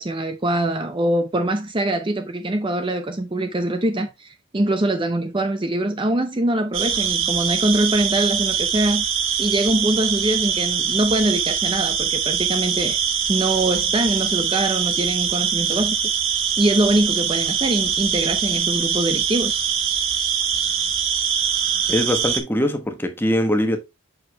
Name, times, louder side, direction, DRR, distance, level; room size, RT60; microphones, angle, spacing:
voice 1, 0.0-9.0 9.4-13.0 13.3-16.0 16.6-19.6, right 1 dB, 25° right, 0.6 m, -23 dB
sound 1, 6.7-22.4, right 7 dB, 70° right, 1.6 m, -23 dB
voice 2, 21.9-23.8, equal, 10° left, 1.1 m, -22 dB
7.8 x 6.4 x 2.2 m
head